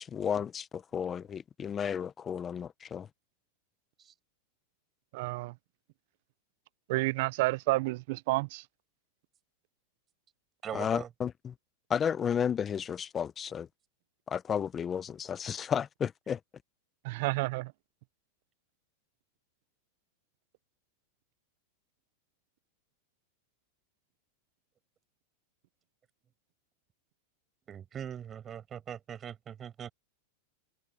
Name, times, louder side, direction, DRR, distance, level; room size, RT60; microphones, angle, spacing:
voice 1, 0.0-3.1 10.7-11.5 11.9-13.7 14.3-16.4, left 7 dB, 25° left, 0.7 m, -33 dB
voice 2, 5.1-5.5 6.9-8.6 17.0-17.7, right 21 dB, 60° right, 0.5 m, -30 dB
voice 3, 10.6-11.1 27.7-29.9, right 9 dB, 25° right, 5.5 m, -41 dB
open air
hypercardioid pair, 125°, 0 cm